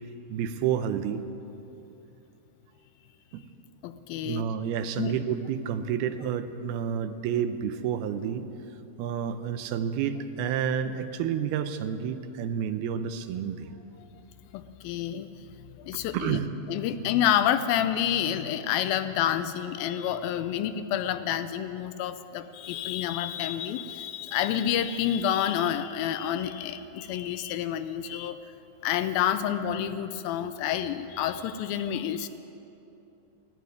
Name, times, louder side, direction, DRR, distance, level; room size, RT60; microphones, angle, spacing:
voice 1, 0.3-1.2 3.3-3.4 4.2-8.5 9.0-13.7 16.1-16.5, right 8 dB, 85° right, 10 dB, 2.6 m, -30 dB
voice 2, 3.8-4.4 5.0-5.2 14.5-15.3 15.8-16.4 16.7-28.4 28.8-32.3, left 10 dB, 80° left, 10 dB, 2.3 m, -28 dB
15.5 x 9.2 x 9.6 m, 2.9 s
omnidirectional pair, 4.4 m